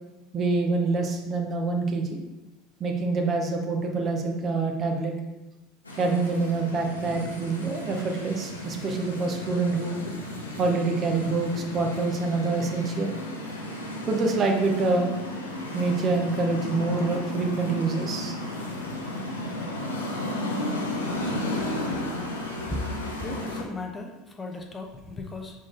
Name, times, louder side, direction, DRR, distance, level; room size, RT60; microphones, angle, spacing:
voice 1, 0.3-2.2 2.8-5.1 6.0-10.0 10.6-13.1 14.1-15.1 15.7-18.3, right 3 dB, 35° right, 2 dB, 1.0 m, -26 dB
sound 1, 5.8-23.6, left 1 dB, 80° left, 0.9 m, -34 dB
voice 2, 23.2-24.1 24.4-25.5, left 3 dB, 20° left, 2 dB, 0.8 m, -36 dB
6.2 x 4.1 x 3.8 m, 1.0 s
figure-of-eight pair, 70°, 0 cm